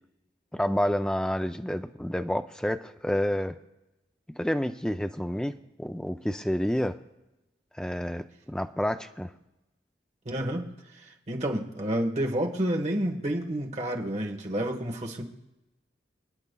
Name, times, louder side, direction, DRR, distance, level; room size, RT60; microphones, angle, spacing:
voice 1, 0.5-3.5 4.4-7.0 7.7-8.2 8.5-9.3, equal, 5° left, 7 dB, 0.4 m, -29 dB
voice 2, 10.2-15.2, right 1 dB, 40° right, 2 dB, 1.2 m, -30 dB
27.5 x 9.5 x 2.3 m, 0.99 s
head